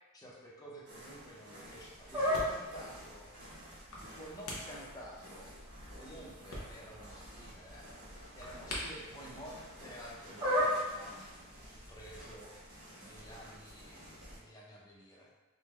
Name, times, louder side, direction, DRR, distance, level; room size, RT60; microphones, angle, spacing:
voice 1, 0.1-3.3 4.0-5.5 5.9-7.9 8.3-12.5 13.0-15.3, equal, 15° left, -4 dB, 0.5 m, -51 dB
sound 1, 0.8-14.4, equal, 55° right, 1.0 m, -52 dB
sound 2, 1.3-13.2, equal, 25° right, 1.4 m, -40 dB
sound 3, 1.6-10.3, left 1 dB, 90° left, 0.7 m, -48 dB
3.4 x 2.0 x 3.1 m, 1.2 s
head